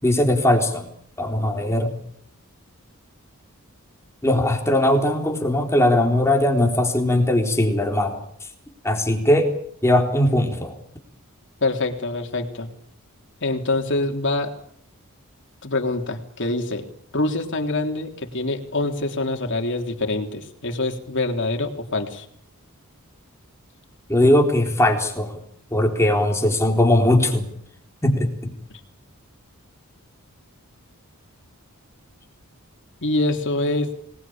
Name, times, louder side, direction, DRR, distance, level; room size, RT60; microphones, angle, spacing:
voice 1, 0.0-0.9 1.2-2.0 4.2-8.2 8.8-9.5 9.8-10.8 24.1-25.4 25.7-27.5 28.0-28.5, left 1 dB, 10° left, 3 dB, 3.9 m, -19 dB
voice 2, 11.6-12.7 13.4-14.5 15.6-16.9 17.1-22.2 28.7-28.8 33.0-33.9, left 2 dB, 55° left, 4 dB, 3.4 m, -25 dB
26.0 x 20.0 x 8.8 m, 0.69 s
head